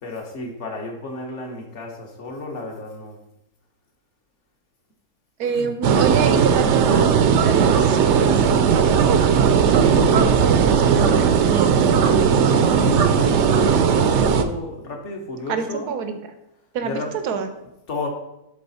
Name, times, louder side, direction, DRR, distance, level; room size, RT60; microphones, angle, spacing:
voice 1, 0.0-3.2 5.4-5.7 12.8-16.0 16.8-18.1, left 2 dB, 50° left, 2 dB, 1.5 m, -32 dB
voice 2, 5.4-12.4 15.5-16.2 16.7-17.5, right 6 dB, 90° right, 8 dB, 1.3 m, -27 dB
sound 1, 5.8-14.4, right 6 dB, 65° right, 0.7 m, -17 dB
11.0 x 3.9 x 4.1 m, 0.87 s
omnidirectional pair, 1.6 m